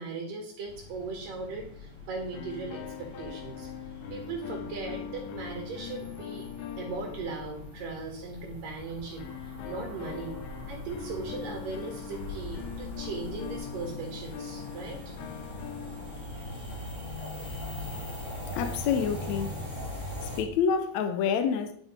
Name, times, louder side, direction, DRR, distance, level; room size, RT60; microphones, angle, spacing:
voice 1, 0.0-3.7 4.1-6.5 6.8-9.2 9.7-10.4 10.7-15.0, right 3 dB, 75° right, 3.5 m, -38 dB
sound 1, 0.7-20.4, left 1 dB, 10° left, 2.5 m, -42 dB
sound 2, 2.3-8.1 9.2-16.6, left 8 dB, 90° left, 2.7 m, -42 dB
sound 3, 8.7-13.9, left 2 dB, 40° right, 2.8 m, -45 dB
voice 2, 18.5-19.7 20.2-21.7, left 7 dB, 75° left, 1.7 m, -28 dB
10.5 x 6.6 x 5.0 m
omnidirectional pair, 3.9 m